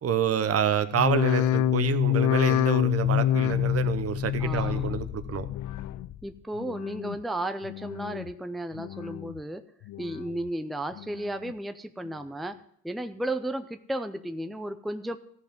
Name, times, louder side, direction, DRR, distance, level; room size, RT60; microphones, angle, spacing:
voice 1, 0.0-5.5, right 8 dB, 50° right, 11 dB, 0.8 m, -28 dB
sound 1, 0.9-6.2 6.6-7.2 7.6-8.3 8.7-9.4 9.8-10.5 11.0-11.5 12.1-12.2, left 12 dB, 75° left, 0.5 m, -27 dB
voice 2, 4.4-4.9 6.2-9.6 10.0-12.6 12.8-15.2, right 1 dB, ahead, 8 dB, 0.5 m, -34 dB
14.5 x 5.3 x 5.1 m, 0.67 s
cardioid pair, 90°, 30 cm